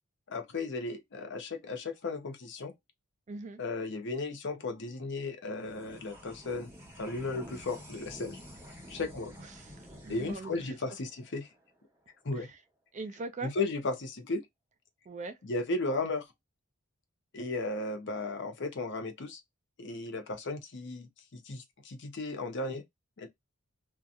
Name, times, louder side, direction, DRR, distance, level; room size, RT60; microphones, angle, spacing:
voice 1, 0.3-2.7 3.6-6.7 7.0-8.4 8.9-9.3 10.1-11.5 12.2-12.5 13.4-14.4 15.4-16.3 17.3-19.4 19.8-22.8 23.2-23.3, left 3 dB, 55° left, 0.7 m, -35 dB
voice 2, 3.3-3.6 9.4-10.5 12.4-12.6 12.9-13.5 15.1-15.4, right 3 dB, 35° right, 0.4 m, -41 dB
sound 1, 5.6-12.3, equal, 10° right, 1.0 m, -50 dB
2.7 x 2.3 x 2.4 m
head